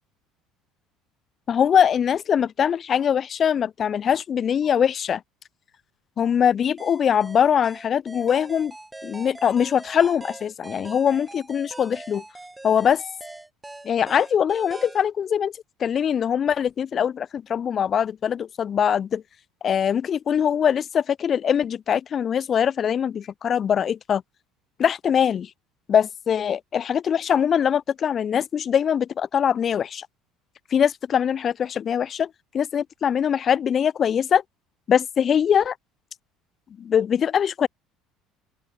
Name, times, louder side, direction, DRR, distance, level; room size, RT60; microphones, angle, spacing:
voice 1, 1.5-5.2 6.2-8.7 9.0-12.2 12.6-13.0 13.8-15.5 15.8-19.2 19.6-24.2 24.8-25.5 25.9-30.1 30.7-34.4 34.9-35.7 36.8-37.7, left 8 dB, 40° left, 0.7 m, -22 dB
sound 1, 6.8-15.1, right 2 dB, 10° right, 1.7 m, -42 dB
open air
supercardioid pair, 105°, 0 cm